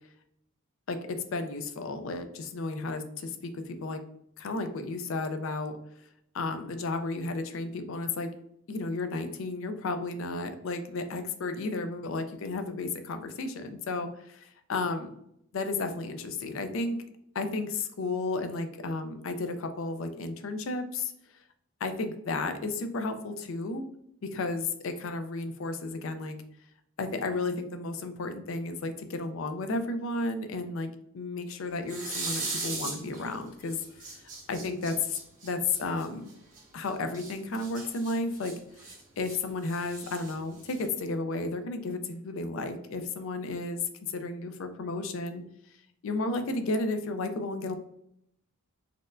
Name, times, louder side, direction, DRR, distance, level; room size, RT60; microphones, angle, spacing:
voice 1, 0.9-4.0 4.4-5.7 6.3-8.3 8.7-15.1 15.5-17.0 17.3-21.1 21.8-23.8 24.2-26.4 27.0-33.8 34.1-34.2 34.5-36.3 36.7-38.5 38.8-38.9 39.2-45.4 46.0-47.7, left 3 dB, 60° left, 8 dB, 0.4 m, -33 dB
sound 1, 31.8-33.3 33.7-36.6 37.1-39.4 39.6-41.0, right 3 dB, 35° right, 1.0 m, -38 dB
4.2 x 2.1 x 2.5 m, 0.73 s
head